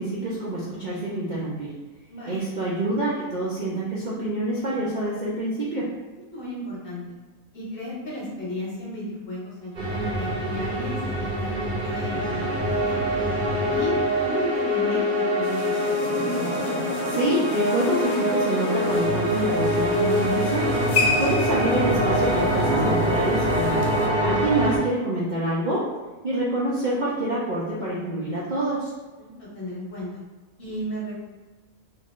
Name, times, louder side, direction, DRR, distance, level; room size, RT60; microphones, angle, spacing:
voice 1, 0.0-1.7 2.3-5.9 17.1-20.7 21.2-23.9 24.2-25.9 26.2-28.9, right 1 dB, 85° right, -6 dB, 0.4 m, -26 dB
voice 2, 2.1-2.4 6.3-7.0 7.5-13.1 13.7-16.2 29.2-30.1 30.6-31.2, left 1 dB, 45° left, -6 dB, 1.1 m, -34 dB
sound 1, 9.7-24.8, equal, 45° right, 0.7 m, -24 dB
sound 2, 15.4-24.1, left 3 dB, 70° left, 1.0 m, -31 dB
3.1 x 2.4 x 3.6 m, 1.3 s
omnidirectional pair, 1.5 m